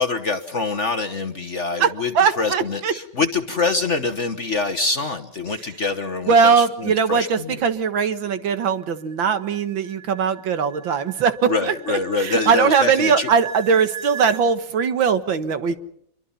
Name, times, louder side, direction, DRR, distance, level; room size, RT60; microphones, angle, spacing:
voice 1, 0.0-2.1 2.4-7.6 11.4-13.3, left 3 dB, 40° left, 7 dB, 1.2 m, -25 dB
voice 2, 1.8-2.9 6.3-15.8, right 6 dB, 70° right, 10 dB, 2.1 m, -20 dB
sound 1, 7.3-14.5, right 7 dB, 40° right, 4.2 m, -38 dB
27.0 x 23.0 x 5.7 m, 0.70 s
omnidirectional pair, 2.3 m